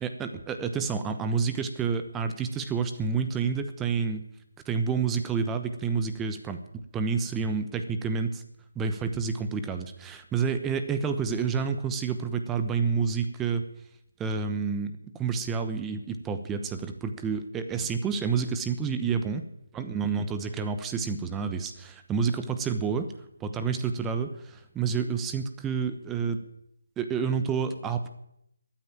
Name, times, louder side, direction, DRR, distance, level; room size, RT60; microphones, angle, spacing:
voice 1, 0.0-4.2 4.7-6.6 6.9-8.4 8.7-13.6 14.2-14.9 15.2-19.4 19.7-23.1 23.4-26.4 27.0-28.1, right 5 dB, 10° right, 9 dB, 0.9 m, -29 dB
13.0 x 9.6 x 8.9 m, 0.77 s
figure-of-eight pair, 160°, 0 cm